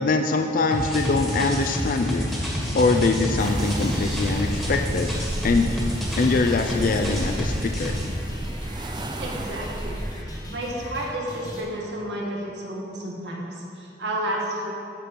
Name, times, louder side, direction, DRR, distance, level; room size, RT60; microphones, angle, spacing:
voice 1, 0.0-2.3 2.7-5.1 5.4-7.9, left 3 dB, 50° left, 5 dB, 0.4 m, -23 dB
sound 1, 0.7-8.1, equal, ahead, 1.6 m, -28 dB
sound 2, 0.9-11.6, equal, 20° left, 1.4 m, -38 dB
sound 3, 3.4-10.2, right 1 dB, 25° right, 0.4 m, -34 dB
voice 2, 9.2-9.9 10.2-14.7, right 1 dB, 85° right, -2 dB, 1.6 m, -31 dB
12.5 x 4.6 x 5.2 m, 2.7 s
head